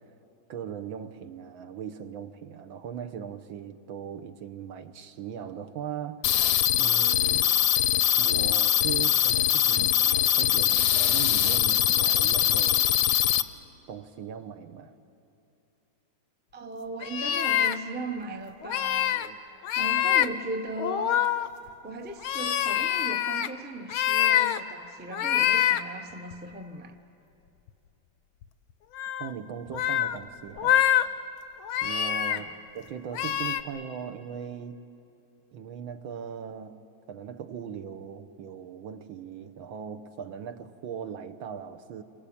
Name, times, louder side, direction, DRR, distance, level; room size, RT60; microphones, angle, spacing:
voice 1, 0.5-6.3 6.8-7.5 8.2-12.9 13.9-14.9 29.2-30.9 31.8-34.8 35.5-42.0, right 8 dB, 75° right, 1.8 m, -39 dB
sound 1, 6.2-13.4, left 11 dB, 65° left, 1.1 m, -22 dB
voice 2, 16.5-19.4 19.7-21.3 21.8-27.0 32.3-32.6, right 2 dB, 10° right, 0.5 m, -37 dB
sound 2, 17.0-17.8 18.6-19.3 19.6-20.3 20.8-21.7 22.2-23.5 23.9-24.6 25.1-25.8 26.3-26.4 28.4-28.5 29.0-29.3 29.7-30.2 30.6-31.0 31.6-32.4 33.1-33.6, left 11 dB, 85° left, 1.7 m, -25 dB
27.5 x 23.5 x 8.6 m
omnidirectional pair, 2.2 m